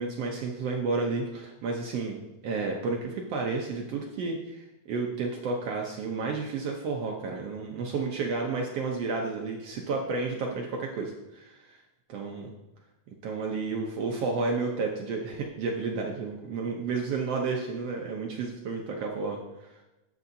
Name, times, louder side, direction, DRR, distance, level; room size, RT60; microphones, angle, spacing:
voice 1, 0.0-2.2 2.4-11.8 12.1-12.5 13.2-19.8, right 4 dB, 75° right, 0 dB, 1.4 m, -31 dB
12.0 x 8.3 x 2.7 m, 1.0 s
omnidirectional pair, 3.8 m